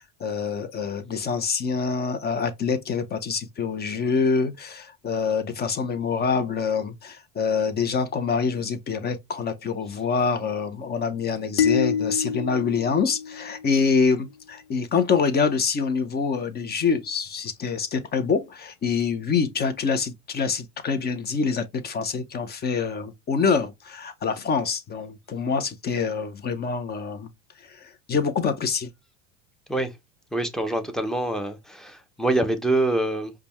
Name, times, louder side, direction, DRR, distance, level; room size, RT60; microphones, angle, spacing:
voice 1, 0.2-27.3 27.7-28.9, left 5 dB, 25° left, 0.8 m, -26 dB
sound 1, 11.6-14.0, left 7 dB, 85° left, 0.9 m, -27 dB
voice 2, 30.3-33.3, right 2 dB, ahead, 0.7 m, -25 dB
5.0 x 2.4 x 3.0 m
supercardioid pair, 115°, 35 cm